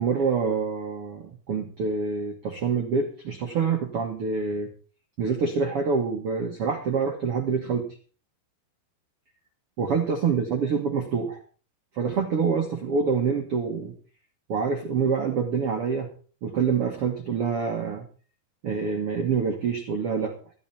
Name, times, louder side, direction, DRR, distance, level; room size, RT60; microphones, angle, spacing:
voice 1, 0.0-4.7 5.2-7.9 9.8-11.4 11.9-13.9 14.5-16.1 16.4-18.0 18.6-20.3, right 5 dB, 60° right, 3 dB, 1.5 m, -26 dB
14.0 x 12.0 x 4.3 m, 0.40 s
omnidirectional pair, 4.7 m